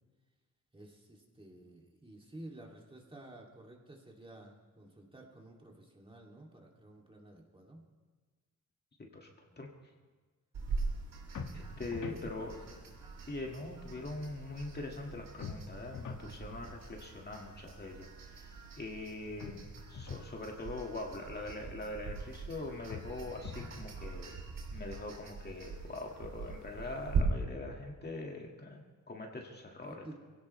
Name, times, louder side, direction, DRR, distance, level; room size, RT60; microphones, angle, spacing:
voice 1, 0.7-7.9 9.5-9.6 12.1-12.8 19.4-19.6 29.8-30.1, right 1 dB, 15° right, -1 dB, 2.7 m, -52 dB
sound 1, 10.5-27.2, right 5 dB, 85° right, 3.1 m, -42 dB
sound 2, 11.3-12.3 15.4-16.3 19.4-20.3 22.9-23.8, left 5 dB, 70° left, 1.7 m, -44 dB
voice 2, 11.5-12.5 13.3-24.4 24.7-30.1, left 2 dB, 30° left, 0 dB, 2.0 m, -43 dB
23.5 x 17.0 x 3.3 m, 1.4 s
cardioid pair, 110°, 33 cm